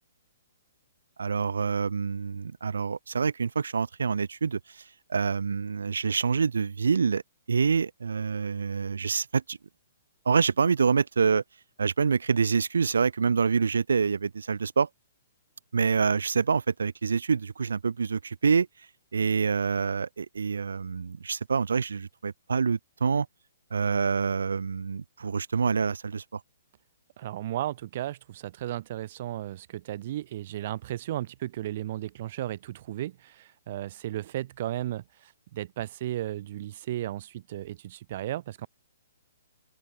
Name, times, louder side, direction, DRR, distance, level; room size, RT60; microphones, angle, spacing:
voice 1, 1.2-4.8 5.1-7.2 7.5-9.6 10.3-11.4 11.8-14.9 15.7-18.7 19.1-23.3 23.7-26.4, right 5 dB, 80° right, 3.4 m, -26 dB
voice 2, 27.2-38.7, right 13 dB, 50° right, 6.5 m, -35 dB
open air
hypercardioid pair, 135°, 0 cm